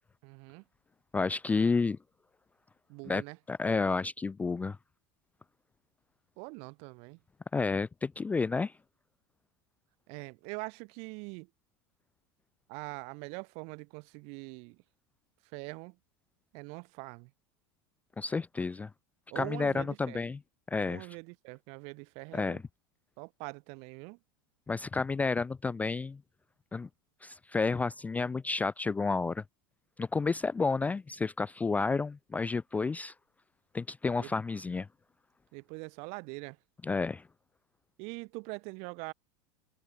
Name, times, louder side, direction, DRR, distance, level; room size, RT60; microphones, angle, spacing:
voice 1, 0.2-0.6 2.9-3.4 6.4-7.2 10.1-11.5 12.7-14.8 15.5-16.0 16.5-17.3 19.3-20.3 20.8-22.6 23.2-24.2 34.2-34.3 35.5-36.6 38.0-39.1, right 33 dB, 60° right, 6.0 m, -43 dB
voice 2, 1.1-2.0 3.1-3.2 3.5-4.8 7.5-8.7 18.2-18.9 19.4-20.4 20.7-21.1 22.3-22.6 24.7-26.2 26.7-26.9 27.2-29.4 30.0-33.1 33.7-34.9 36.8-37.2, left 4 dB, 10° left, 0.3 m, -30 dB
supercardioid pair, 115°, 13 cm